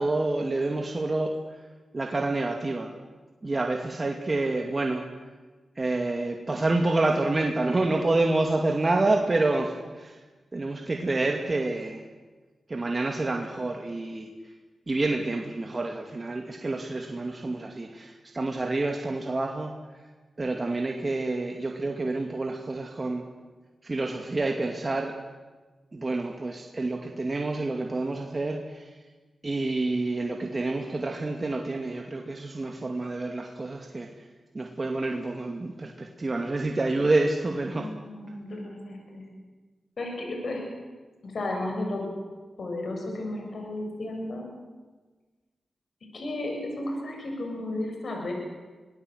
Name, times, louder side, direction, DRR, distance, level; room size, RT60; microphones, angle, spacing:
voice 1, 0.0-1.6 1.9-2.9 3.4-5.1 5.8-10.2 10.5-12.0 12.7-14.3 14.9-20.0 20.4-23.2 23.8-25.1 25.9-28.9 29.4-34.1 34.5-37.9, right 2 dB, 40° right, 2 dB, 2.4 m, -28 dB
voice 2, 37.7-39.3 40.0-40.6 41.2-42.1 42.6-44.5 46.1-48.3, left 2 dB, 70° left, 2 dB, 7.2 m, -33 dB
24.5 x 18.0 x 8.1 m, 1.3 s
cardioid pair, 55°, 0 cm